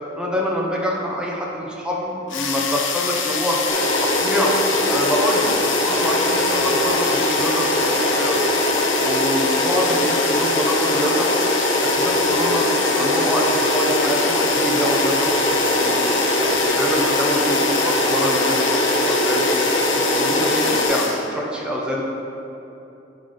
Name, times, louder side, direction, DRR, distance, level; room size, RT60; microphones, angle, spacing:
voice 1, 0.2-3.6 4.0-8.5 9.0-11.3 11.9-12.6 12.9-16.0 16.4-19.4 20.1-22.0, equal, 5° right, -3 dB, 0.8 m, -25 dB
sound 1, 2.3-21.3, left 6 dB, 85° left, 0.8 m, -26 dB
sound 2, 3.7-20.9, equal, 25° left, 1.4 m, -21 dB
12.0 x 4.0 x 5.0 m, 2.9 s
head